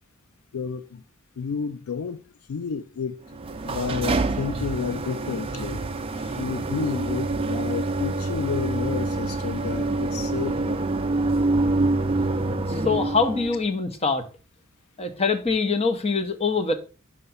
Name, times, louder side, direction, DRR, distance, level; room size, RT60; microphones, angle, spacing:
voice 1, 0.5-1.0 1.4-2.2 2.5-3.2 3.6-5.8 6.4-10.9, left 6 dB, 80° left, 0.4 m, -31 dB
sound 1, 3.3-13.6, right 2 dB, 25° right, 0.4 m, -26 dB
voice 2, 12.7-14.2 15.0-16.7, left 4 dB, 30° left, 0.8 m, -24 dB
5.7 x 3.3 x 5.5 m
head